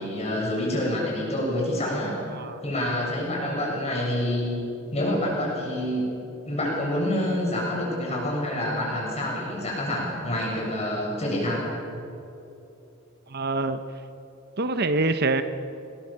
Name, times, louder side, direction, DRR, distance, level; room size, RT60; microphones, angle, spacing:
voice 1, 0.0-2.1 2.6-4.6 4.9-6.1 6.5-11.7, left 1 dB, 30° left, -3 dB, 7.5 m, -27 dB
voice 2, 13.3-13.8 14.6-15.4, right 3 dB, 50° right, 10 dB, 0.8 m, -25 dB
25.5 x 20.5 x 7.5 m, 2.9 s
head